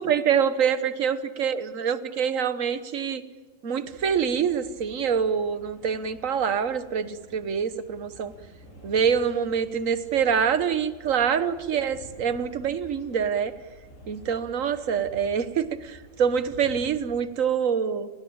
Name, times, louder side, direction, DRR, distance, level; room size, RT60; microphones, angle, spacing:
voice 1, 0.0-3.2 3.6-8.3 8.8-13.5 14.1-18.1, right 7 dB, 80° right, 12 dB, 1.6 m, -25 dB
sound 1, 3.8-17.2, right 2 dB, 75° left, 7.5 m, -49 dB
30.0 x 19.5 x 8.7 m, 1.3 s
omnidirectional pair, 1.4 m